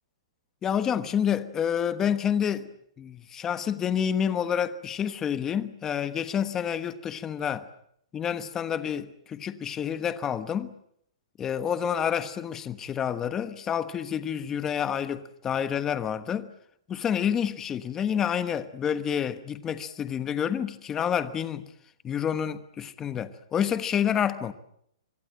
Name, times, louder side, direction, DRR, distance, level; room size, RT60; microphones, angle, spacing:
voice 1, 0.6-2.7 3.0-7.7 8.1-10.7 11.4-16.5 16.9-21.7 22.0-24.5, left 8 dB, 15° left, 1.2 m, -28 dB
25.0 x 25.0 x 7.8 m
hypercardioid pair, 165°, 3 cm